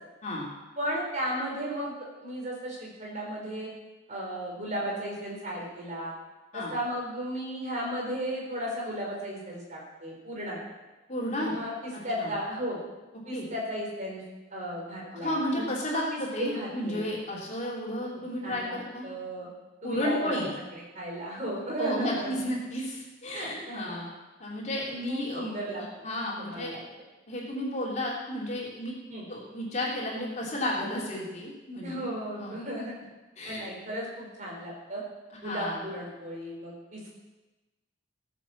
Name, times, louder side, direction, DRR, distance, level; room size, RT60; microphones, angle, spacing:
voice 1, 0.8-3.7 4.1-6.1 6.5-10.6 11.4-12.8 13.3-14.2 14.5-17.0 18.1-18.7 19.0-19.5 19.8-20.5 20.9-22.3 23.3-23.8 25.1-25.8 26.4-26.8 29.1-29.2 31.8-32.9 33.5-35.0 35.4-37.1, equal, 40° right, -2 dB, 4.5 m, -35 dB
voice 2, 11.1-11.5 12.2-12.3 13.3-13.5 15.1-19.1 19.8-20.5 21.8-24.1 24.4-25.4 25.8-26.8 27.3-28.9 29.3-32.6 33.4-33.6 35.4-35.8, left 1 dB, 40° left, -4 dB, 3.3 m, -32 dB
17.5 x 7.6 x 7.3 m, 1.1 s
head